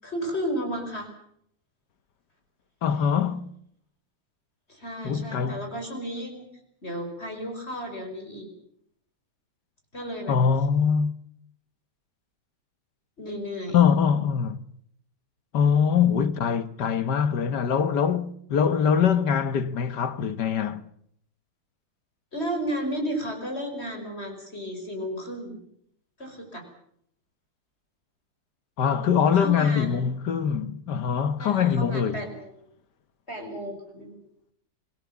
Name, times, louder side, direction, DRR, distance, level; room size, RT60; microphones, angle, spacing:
voice 1, 0.0-1.1 4.7-6.5 6.8-8.5 9.9-10.4 13.2-13.8 22.3-25.6 26.2-26.6 29.3-30.0 31.4-32.6 33.3-34.2, equal, 30° left, 5.6 m, -33 dB
voice 2, 2.8-3.5 5.0-5.7 10.3-11.1 13.7-14.6 15.5-20.8 28.8-32.2, left 7 dB, 55° left, 1.6 m, -23 dB
26.0 x 19.0 x 7.1 m
omnidirectional pair, 2.3 m